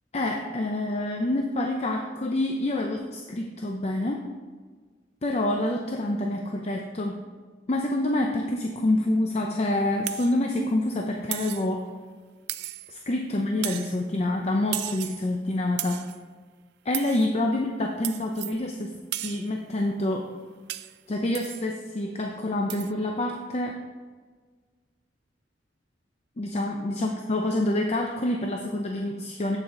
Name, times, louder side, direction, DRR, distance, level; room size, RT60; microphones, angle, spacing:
voice 1, 0.1-4.3 5.2-7.2 7.7-11.9 12.9-16.1 16.8-20.3 21.1-23.8 26.4-29.6, left 1 dB, 35° left, 2 dB, 0.6 m, -27 dB
sound 1, 10.1-10.4 11.3-11.7 12.5-13.0 13.6-14.0 14.7-15.3 15.8-16.2 16.9-17.3 18.0-18.6 19.1-19.5 20.7-21.0 21.4-21.7 22.7-22.9, right 15 dB, 60° right, 0.3 m, -35 dB
7.9 x 7.0 x 3.8 m, 1.5 s
head